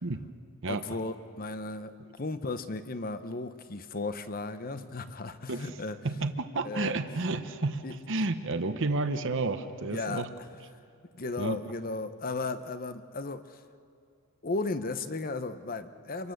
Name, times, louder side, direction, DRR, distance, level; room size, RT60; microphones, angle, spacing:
voice 1, 0.7-6.0 6.6-6.9 7.8-7.9 9.9-10.3 11.1-13.6 14.4-16.3, left 3 dB, 40° left, 11 dB, 0.9 m, -35 dB
voice 2, 6.0-7.8 8.1-10.3 11.4-11.6, right 3 dB, 55° right, 9 dB, 1.0 m, -31 dB
27.5 x 23.5 x 6.6 m, 2.5 s
head